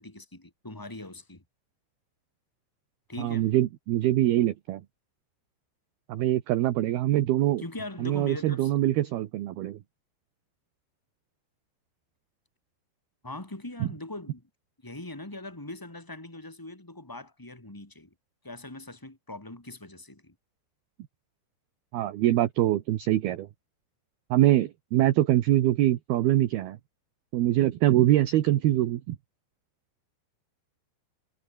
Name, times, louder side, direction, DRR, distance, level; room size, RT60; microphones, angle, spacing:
voice 1, 0.0-1.4 3.1-3.5 7.6-8.7 13.2-14.4 14.8-18.1 18.4-20.3, left 2 dB, 10° left, 1.0 m, -41 dB
voice 2, 3.2-4.8 6.1-7.6 8.0-9.8 13.8-13.9 21.9-23.5 24.3-26.8 27.3-29.2, right 14 dB, 65° right, 2.7 m, -24 dB
omnidirectional pair, 5.6 m